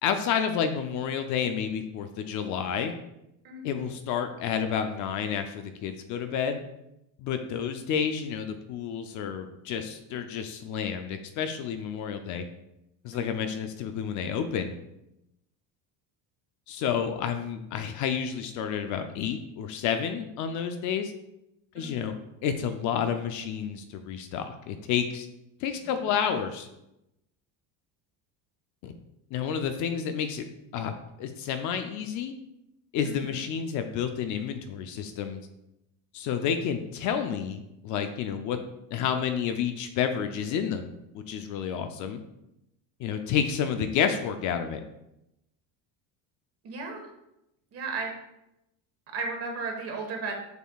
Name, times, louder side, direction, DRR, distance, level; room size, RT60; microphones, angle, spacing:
voice 1, 0.0-2.9 3.6-6.6 7.2-12.4 13.0-14.7 16.7-21.1 21.7-22.1 22.4-25.3 25.6-26.7 28.8-28.9 29.3-30.5 30.7-30.9 31.2-32.3 32.9-35.4 36.1-38.6 38.9-40.9 41.3-42.2 43.0-44.8, left 7 dB, 50° left, 7 dB, 0.5 m, -30 dB
voice 2, 3.4-3.8 13.1-13.5 21.7-22.1 25.8-25.9 26.1-26.3 33.0-33.4 46.6-47.1 47.7-48.1 49.1-50.3, right 4 dB, 35° right, 2 dB, 1.4 m, -35 dB
6.7 x 6.3 x 2.3 m, 0.86 s
cardioid pair, 170°, 40 cm